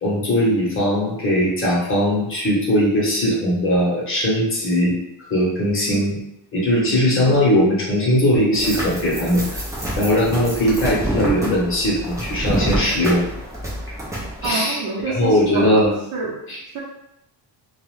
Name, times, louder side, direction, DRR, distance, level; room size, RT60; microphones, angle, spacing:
voice 1, 0.0-4.9 5.3-6.2 6.5-9.6 10.0-13.2 14.4-15.9 16.5-16.6, equal, 30° left, -6 dB, 0.9 m, -19 dB
sound 1, 8.5-14.5, right 1 dB, 10° right, 0.4 m, -27 dB
voice 2, 14.4-15.8 16.1-16.4 16.7-16.8, right 4 dB, 55° right, -4 dB, 0.8 m, -27 dB
2.5 x 2.3 x 3.1 m, 0.86 s
cardioid pair, 170°, 45 cm